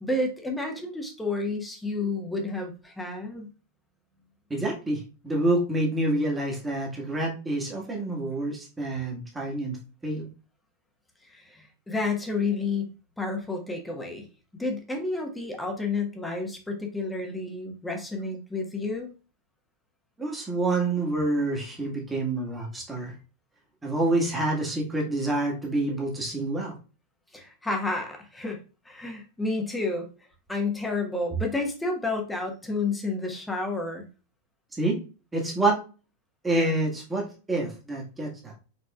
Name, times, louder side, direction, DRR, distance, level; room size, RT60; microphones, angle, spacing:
voice 1, 0.0-3.5 11.3-14.3 14.6-19.1 27.3-28.6 28.8-30.1 30.5-34.1, left 3 dB, 5° left, 2 dB, 1.3 m, -30 dB
voice 2, 4.5-9.8 10.0-10.2 20.2-23.1 23.8-26.7 34.8-35.0 35.3-35.8 36.4-38.5, right 2 dB, 10° right, -2 dB, 1.6 m, -27 dB
5.3 x 4.1 x 2.4 m, 0.33 s
figure-of-eight pair, 90°, 0 cm